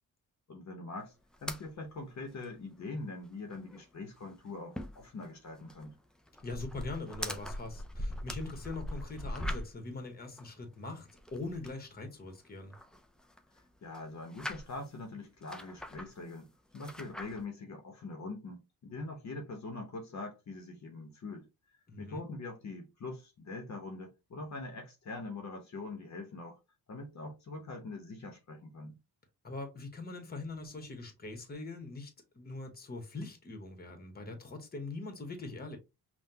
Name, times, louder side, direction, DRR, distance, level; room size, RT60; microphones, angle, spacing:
voice 1, 0.5-1.1 1.4-5.9 13.8-21.5 22.0-26.6 26.9-29.0, left 3 dB, 45° left, 0.9 m, -43 dB
sound 1, 1.3-1.6 1.9-2.0 2.3-2.4 2.8-2.9 3.2-3.8 4.1-9.9 10.4-11.8 12.3-13.6 13.9-14.9 15.4-16.4 16.7-17.4, equal, ahead, 0.4 m, -41 dB
voice 2, 6.4-12.7 21.9-22.2 29.4-35.8, left 3 dB, 25° left, 1.1 m, -42 dB
5.7 x 2.3 x 2.8 m
wide cardioid pair, 130°, 37 cm